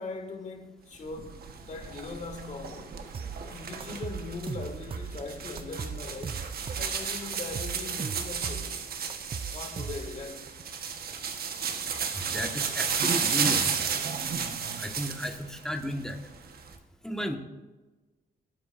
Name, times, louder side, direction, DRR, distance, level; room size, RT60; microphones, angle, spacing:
voice 1, 0.0-3.0 3.4-6.4 6.7-8.7 9.5-10.5, left 3 dB, 45° left, 2.0 m, -40 dB
sound 1, 1.1-15.4 15.8-16.8, right 6 dB, 65° right, 1.3 m, -33 dB
sound 2, 3.1-3.4 3.8-5.2 5.6-6.9 7.3-8.7 9.1-10.3, right 6 dB, 30° right, 0.5 m, -37 dB
voice 2, 12.3-13.7 14.8-16.2 17.0-17.4, equal, 5° left, 1.4 m, -33 dB
18.5 x 8.6 x 2.6 m
cardioid pair, 110°, 17 cm